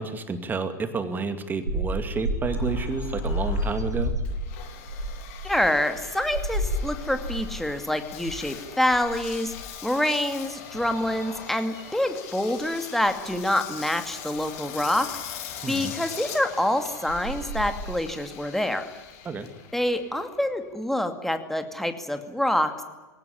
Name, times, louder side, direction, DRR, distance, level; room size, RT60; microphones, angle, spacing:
voice 1, 0.0-4.1 15.6-15.9 19.2-19.5, right 4 dB, 20° right, 9 dB, 2.4 m, -30 dB
sound 1, 1.7-7.7 8.0-8.4 8.8-9.8 10.4-12.7 13.1-13.3 14.3-14.4 16.6-16.7 17.0-17.9, right 1 dB, 85° right, 5.2 m, -31 dB
Engine, 2.5-20.9, left 9 dB, 55° left, 3.6 m, -42 dB
voice 2, 5.4-9.5 9.8-15.1 15.7-18.8 19.7-22.8, left 1 dB, 5° left, 7 dB, 2.4 m, -26 dB
21.5 x 18.0 x 10.0 m, 1.2 s
figure-of-eight pair, 90°, 9 cm